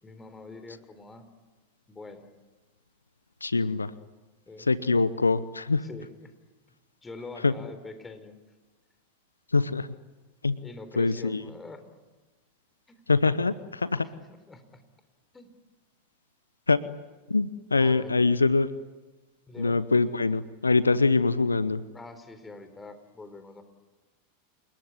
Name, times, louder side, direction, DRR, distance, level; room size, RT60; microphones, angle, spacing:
voice 1, 0.0-1.3 1.9-2.3 4.5-4.7 5.8-6.3 7.0-8.3 10.6-12.0 12.9-13.0 14.0-14.1 14.5-14.8 15.3-15.5 17.7-18.2 19.5-19.8 21.9-23.6, left 3 dB, 15° left, 9 dB, 4.1 m, -44 dB
voice 2, 3.4-3.9 4.7-5.8 7.4-7.5 9.5-9.9 10.4-10.6 11.0-11.4 13.1-14.1 16.7-16.8 17.3-18.7 19.6-21.8, left 3 dB, 85° left, 17 dB, 0.8 m, -24 dB
29.0 x 19.5 x 9.7 m, 1.2 s
figure-of-eight pair, 90°, 0 cm